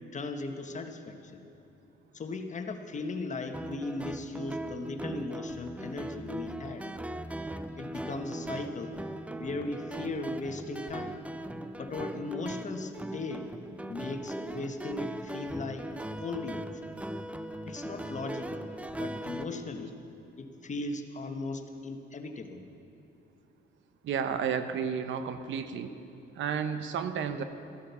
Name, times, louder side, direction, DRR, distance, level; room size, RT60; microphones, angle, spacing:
voice 1, 0.1-1.5 2.1-6.9 7.8-9.0 9.4-11.2 11.8-13.5 13.9-16.8 17.7-20.0 20.3-22.6, left 3 dB, 40° left, 6 dB, 1.3 m, -37 dB
sound 1, 3.5-19.4, right 1 dB, 5° right, 0.6 m, -39 dB
voice 2, 24.0-25.9 26.4-27.4, right 7 dB, 75° right, 10 dB, 0.9 m, -32 dB
14.0 x 11.5 x 6.9 m, 2.9 s
cardioid pair, 90°, 20 cm